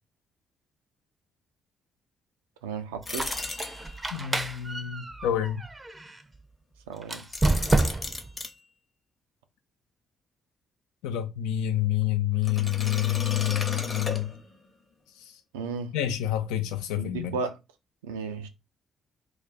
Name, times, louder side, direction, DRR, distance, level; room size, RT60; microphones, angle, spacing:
voice 1, 2.6-3.3 6.9-7.3 15.5-15.9 17.0-17.6 18.0-18.5, right 5 dB, 75° right, 0.4 m, -34 dB
Squeak, 3.0-6.2 7.0-8.3, right 2 dB, 25° right, 0.5 m, -29 dB
sound 1, 3.1-4.2 7.2-8.5 12.4-14.7, left 3 dB, 30° left, 0.8 m, -35 dB
voice 2, 4.1-5.6 11.0-14.4 15.2-15.3 15.9-17.3, left 12 dB, 70° left, 0.4 m, -28 dB
2.4 x 2.2 x 4.0 m
figure-of-eight pair, 40°, 0 cm